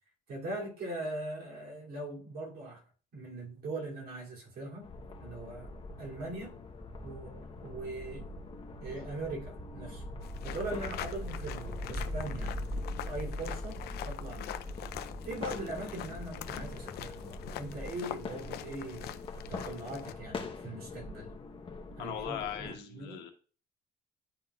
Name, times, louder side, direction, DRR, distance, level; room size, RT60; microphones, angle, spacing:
voice 1, 0.3-2.8 3.1-4.9 5.2-5.7 6.0-6.6 7.0-8.3 8.8-12.6 13.0-14.5 15.2-21.4 22.0-23.2, right 2 dB, 65° right, -3 dB, 2.6 m, -41 dB
sound 1, 4.8-22.8, left 3 dB, 30° left, 0.9 m, -45 dB
sound 2, 6.7-18.6, equal, 20° right, 2.2 m, -42 dB
sound 3, 10.2-20.1, left 12 dB, 70° left, 0.5 m, -44 dB
voice 2, 22.0-23.3, left 9 dB, 85° left, 3 dB, 1.2 m, -39 dB
11.0 x 3.9 x 2.3 m, 0.39 s
cardioid pair, 110°, 17 cm